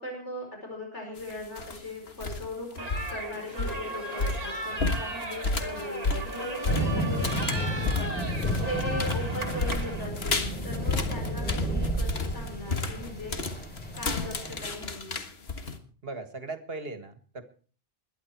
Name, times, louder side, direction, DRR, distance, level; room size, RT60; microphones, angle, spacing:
voice 1, 0.0-13.3 13.9-15.1, left 1 dB, 80° left, 0 dB, 5.4 m, -39 dB
sound 1, 1.2-1.8 2.1-2.5 2.8-15.8, left 3 dB, 60° left, 1.9 m, -32 dB
sound 2, 2.8-10.1, right 1 dB, 35° right, 2.2 m, -36 dB
sound 3, 6.7-14.7, equal, 10° left, 4.0 m, -32 dB
voice 2, 16.0-17.4, right 3 dB, 60° right, 9 dB, 2.0 m, -38 dB
21.0 x 11.5 x 4.6 m, 0.40 s
omnidirectional pair, 1.2 m